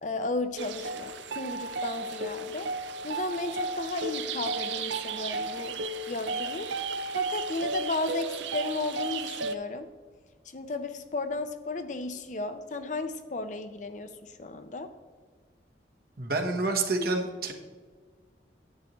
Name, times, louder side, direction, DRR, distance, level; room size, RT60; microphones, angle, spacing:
voice 1, 0.0-2.7 3.0-5.8 6.1-6.7 7.1-9.9 10.5-14.9, left 2 dB, 40° left, 9 dB, 0.5 m, -34 dB
sound 1, 0.6-9.6, right 3 dB, 75° right, 0.6 m, -34 dB
voice 2, 16.2-17.5, right 3 dB, 55° right, 3 dB, 1.1 m, -28 dB
10.5 x 8.2 x 3.1 m, 1.5 s
head